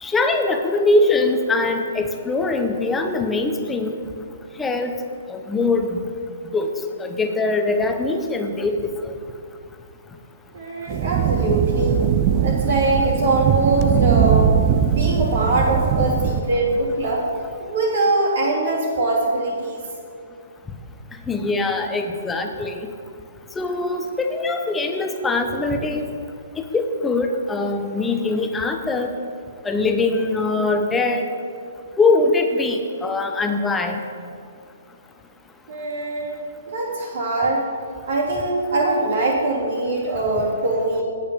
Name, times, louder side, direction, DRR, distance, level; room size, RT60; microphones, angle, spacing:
voice 1, 0.0-3.9 4.6-4.9 5.3-6.0 6.5-6.7 7.0-9.1 21.3-22.9 23.6-26.1 26.6-29.1 29.6-31.2 32.0-34.0, left 3 dB, 10° left, 5 dB, 1.0 m, -22 dB
voice 2, 10.5-12.0 12.4-14.6 14.9-17.2 17.6-19.8 35.7-37.7 38.1-41.0, right 2 dB, 70° right, -7 dB, 3.2 m, -22 dB
sound 1, 10.9-16.4, right 8 dB, 30° right, 0.6 m, -20 dB
8.7 x 8.6 x 7.0 m, 2.4 s
hypercardioid pair, 130°, 0 cm